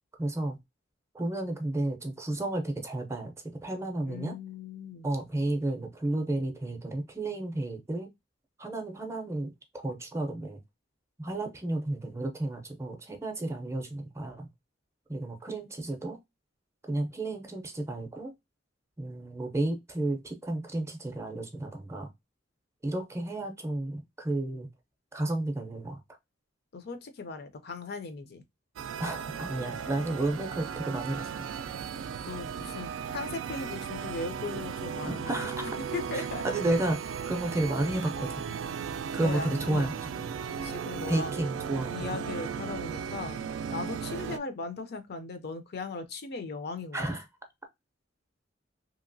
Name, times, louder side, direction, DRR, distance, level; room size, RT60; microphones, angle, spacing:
voice 1, 0.2-0.6 1.1-3.3 3.6-4.4 5.0-8.1 8.6-10.6 11.2-14.5 15.1-16.2 16.9-18.3 19.0-22.1 22.8-24.7 25.1-26.0 29.0-31.3 35.1-35.7 36.1-38.6 39.1-40.4 41.1-42.2 46.9-47.3, right 2 dB, 15° right, 0.5 m, -32 dB
voice 2, 4.1-5.2 26.7-28.4 32.2-35.5 35.9-36.4 39.2-40.0 40.6-41.3 41.9-43.4 43.7-47.0, left 4 dB, 55° left, 0.5 m, -38 dB
sound 1, 28.8-44.4, right 7 dB, 80° right, 0.3 m, -36 dB
2.9 x 2.8 x 2.6 m
head